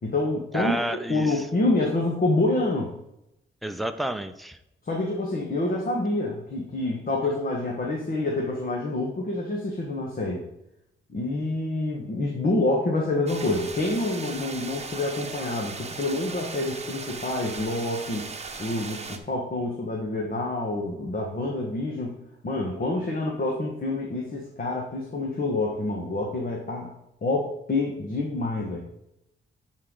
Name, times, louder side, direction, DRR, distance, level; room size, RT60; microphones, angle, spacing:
voice 1, 0.0-0.7 1.1-2.9 4.8-10.4 11.1-18.3 18.6-22.1 22.4-26.9 27.2-28.8, left 2 dB, 45° left, -1 dB, 1.6 m, -27 dB
voice 2, 0.5-1.5 3.6-4.6, right 1 dB, ahead, 8 dB, 0.7 m, -30 dB
sound 1, 13.3-19.2, right 4 dB, 30° right, 1.0 m, -38 dB
10.5 x 4.5 x 3.9 m, 0.84 s
cardioid pair, 75°, 20 cm